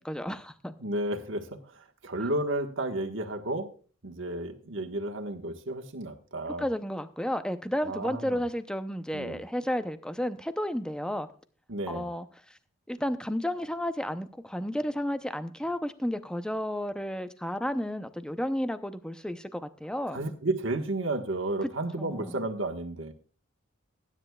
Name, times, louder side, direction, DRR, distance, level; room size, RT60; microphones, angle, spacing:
voice 1, 0.0-0.7 6.6-11.3 11.9-12.3 12.9-20.2 22.0-22.4, equal, 5° left, 10 dB, 0.6 m, -32 dB
voice 2, 0.8-3.7 4.0-6.7 7.8-8.4 9.1-9.4 11.7-12.1 20.1-23.1, right 2 dB, 60° right, 3 dB, 1.4 m, -32 dB
19.5 x 10.0 x 2.3 m, 0.41 s
head